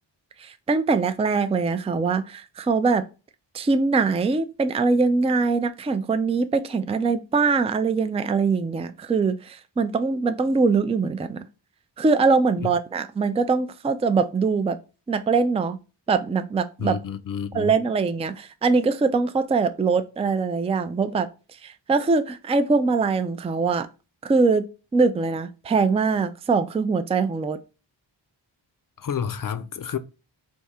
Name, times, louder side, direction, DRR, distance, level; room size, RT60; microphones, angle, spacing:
voice 1, 0.4-3.0 3.5-11.4 12.0-14.8 15.1-15.8 16.1-17.0 17.5-21.3 21.6-23.9 24.2-24.7 24.9-27.6, right 4 dB, 15° right, 0.3 m, -22 dB
voice 2, 16.8-17.7 29.0-30.0, left 8 dB, 45° left, 0.5 m, -30 dB
3.5 x 2.7 x 4.1 m
wide cardioid pair, 75°, 47 cm